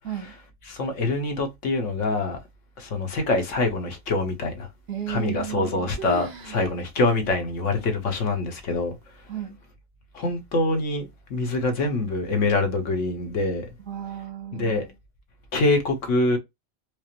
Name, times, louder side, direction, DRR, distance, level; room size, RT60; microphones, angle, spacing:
voice 1, 0.0-0.3 4.9-5.7 9.3-9.6 13.8-14.8, right 11 dB, 85° right, 1.5 m, -33 dB
voice 2, 0.7-2.4 2.8-4.7 5.1-8.9 10.1-13.7 14.6-14.9 15.5-16.4, left 2 dB, 70° left, 1.3 m, -25 dB
sound 1, 5.2-5.7 6.0-6.7 7.0-7.1 7.8-7.9 8.6-9.0, right 4 dB, 45° right, 0.6 m, -38 dB
4.9 x 2.0 x 2.9 m
omnidirectional pair, 1.4 m